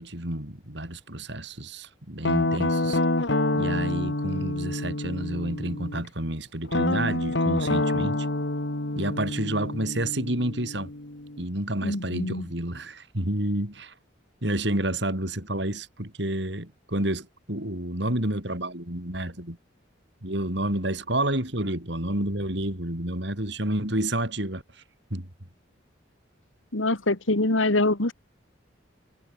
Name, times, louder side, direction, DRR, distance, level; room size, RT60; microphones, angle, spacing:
voice 1, 0.0-3.0 3.5-8.3 8.9-10.9 11.4-13.9 14.4-19.6 20.2-24.8 25.1-25.3, right 1 dB, 60° right, 4.9 m, -29 dB
Guitar, 2.2-6.0 6.7-11.4, left 2 dB, 65° left, 2.2 m, -27 dB
voice 2, 11.8-12.5 26.7-28.1, left 2 dB, 85° left, 2.3 m, -24 dB
head